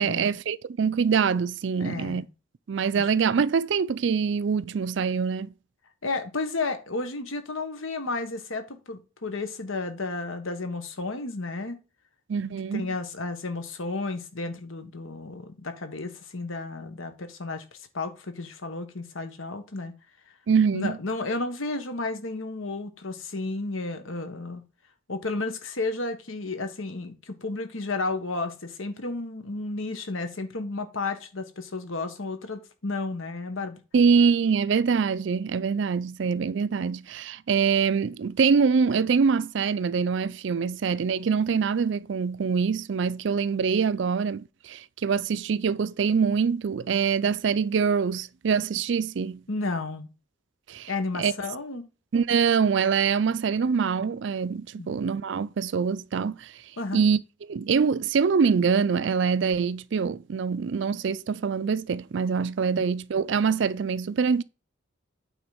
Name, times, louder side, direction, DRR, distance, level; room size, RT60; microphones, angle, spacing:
voice 1, 0.0-2.3 2.7-5.5 12.3-12.9 20.5-21.0 33.9-49.4 50.7-50.9 51.2-51.3 52.1-56.5 56.9-57.2 57.5-64.4, right 6 dB, 60° right, 0.4 m, -24 dB
voice 2, 1.8-2.3 3.0-3.1 6.0-11.8 12.7-17.6 17.9-19.9 20.7-24.6 25.1-33.8 49.5-50.1 50.9-51.8 54.8-54.9 56.8-57.0 62.7-62.8, left 3 dB, 80° left, 1.4 m, -32 dB
8.9 x 3.8 x 5.0 m
head